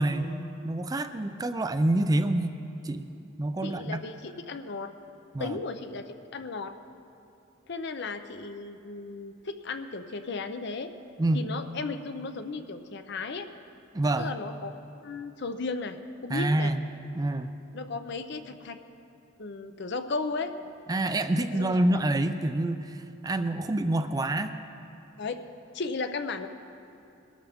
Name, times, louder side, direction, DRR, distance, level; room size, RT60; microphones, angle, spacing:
voice 1, 0.0-3.1 3.4-4.0 5.3-5.6 11.2-11.4 13.9-14.3 16.3-16.8 17.1-17.5 20.9-24.5, right 1 dB, 20° right, 9 dB, 0.4 m, -27 dB
voice 2, 3.6-4.9 5.4-6.7 7.7-10.9 11.3-13.5 14.2-14.7 15.0-16.0 16.2-16.7 17.7-18.8 19.4-20.5 21.5-21.8 25.2-25.4 25.7-26.5, left 3 dB, 60° left, 9 dB, 0.7 m, -35 dB
21.5 x 12.5 x 3.5 m, 2.7 s
head